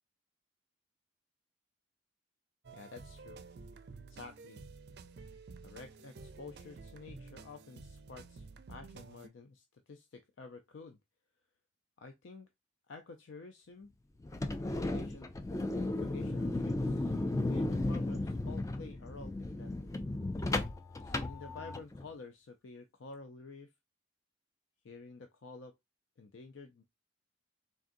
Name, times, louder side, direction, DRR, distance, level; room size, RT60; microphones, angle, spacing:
sound 1, 2.6-9.3, right 4 dB, 55° right, 0.4 m, -51 dB
voice 1, 2.7-3.4 4.1-4.6 5.6-11.0 12.0-12.5 12.9-13.9 14.6-15.3 15.8-19.7 21.0-23.7 24.8-25.7 26.2-26.8, left 4 dB, 70° left, 0.5 m, -50 dB
sound 2, 14.2-22.0, left 2 dB, 15° left, 0.3 m, -35 dB
3.9 x 3.6 x 2.5 m
head